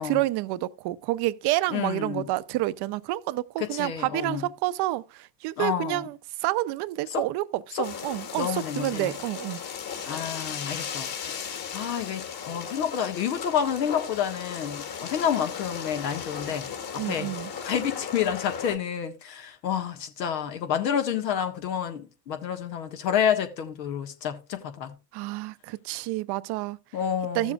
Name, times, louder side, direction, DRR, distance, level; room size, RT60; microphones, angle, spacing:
voice 1, 0.0-9.6 17.0-17.5 25.1-26.8 27.3-27.5, right 17 dB, 55° right, 0.7 m, -29 dB
voice 2, 1.7-2.2 3.6-4.5 5.6-6.1 7.1-7.2 7.7-7.8 8.3-9.1 10.1-17.3 17.6-24.9 26.9-27.5, left 8 dB, 85° left, 1.7 m, -29 dB
sound 1, 7.8-18.8, left 7 dB, 45° left, 2.6 m, -36 dB
15.0 x 7.2 x 2.4 m
hypercardioid pair, 80°, 49 cm